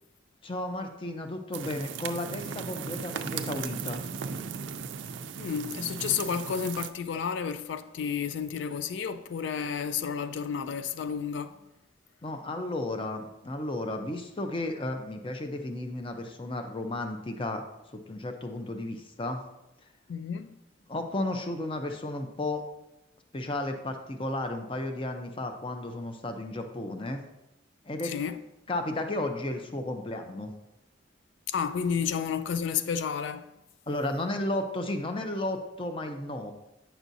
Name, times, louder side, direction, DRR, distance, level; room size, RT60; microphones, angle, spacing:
voice 1, 0.4-4.0 12.2-17.6 17.9-19.4 20.9-22.6 23.3-27.2 27.9-28.1 28.7-30.5 33.9-36.5, left 1 dB, 30° left, 0.6 m, -33 dB
sound 1, 1.5-6.9, right 6 dB, 75° right, 0.4 m, -37 dB
voice 2, 5.4-11.6 20.1-20.6 28.0-28.4 31.5-33.5, left 7 dB, 70° left, 0.4 m, -31 dB
9.0 x 6.0 x 2.7 m
head